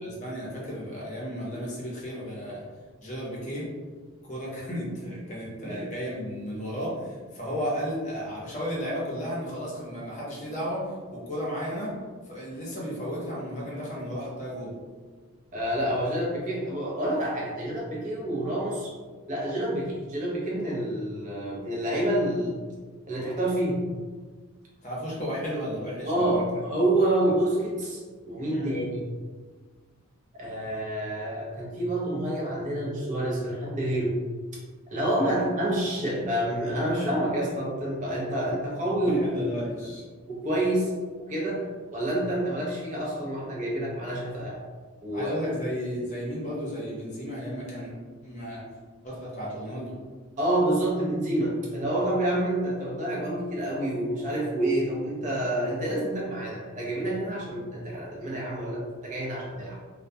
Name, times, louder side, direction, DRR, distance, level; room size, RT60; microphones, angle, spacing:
voice 1, 0.0-2.6 3.0-3.7 4.2-10.9 11.1-11.9 12.3-14.7 24.8-26.4 28.5-28.8 35.3-35.4 39.1-40.0 45.1-47.9 48.2-48.6 49.0-49.9, equal, 35° left, -5 dB, 0.6 m, -34 dB
voice 2, 15.5-18.9 19.3-22.6 23.1-23.8 26.0-29.0 30.3-34.2 34.9-39.9 40.3-40.9 41.3-41.6 41.9-44.6 45.0-45.3 50.4-59.8, right 1 dB, 35° right, -4 dB, 0.5 m, -28 dB
2.2 x 2.1 x 2.6 m, 1.4 s
head